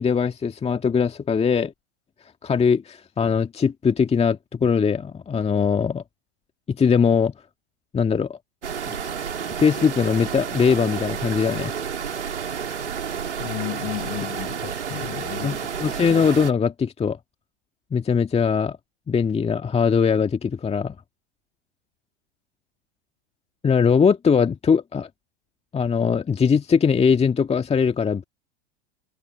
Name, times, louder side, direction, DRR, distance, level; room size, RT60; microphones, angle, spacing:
voice 1, 0.0-1.7 2.4-6.0 6.7-7.3 7.9-8.4 8.9-9.0 9.6-11.7 15.4-17.2 17.9-18.8 19.1-21.0 23.6-25.1 25.7-28.2, left 6 dB, 20° left, 1.9 m, -21 dB
sound 1, 8.6-16.5, right 7 dB, 80° right, 4.0 m, -30 dB
voice 2, 13.4-15.6, left 30 dB, 50° left, 7.3 m, -33 dB
figure-of-eight pair, 90°, 34 cm